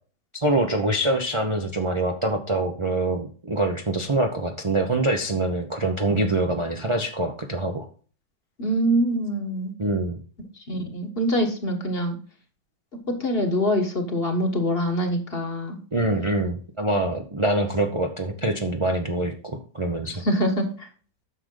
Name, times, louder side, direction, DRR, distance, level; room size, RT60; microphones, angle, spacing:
voice 1, 0.3-7.9 9.8-10.2 15.9-20.2, right 2 dB, 45° right, 3 dB, 0.4 m, -25 dB
voice 2, 8.6-9.7 10.5-12.2 13.1-15.8 20.1-20.9, equal, 35° left, 5 dB, 1.4 m, -24 dB
9.7 x 6.6 x 3.8 m, 0.41 s
omnidirectional pair, 2.0 m